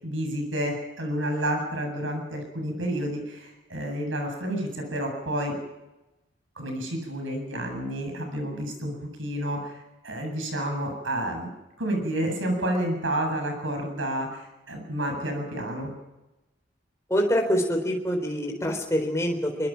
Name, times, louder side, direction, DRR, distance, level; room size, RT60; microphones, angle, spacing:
voice 1, 0.0-5.6 6.5-11.5 11.8-15.9, right 1 dB, 90° right, 3 dB, 8.0 m, -30 dB
voice 2, 17.1-19.7, equal, 15° left, 1 dB, 4.1 m, -25 dB
24.5 x 23.0 x 6.0 m, 1.0 s
head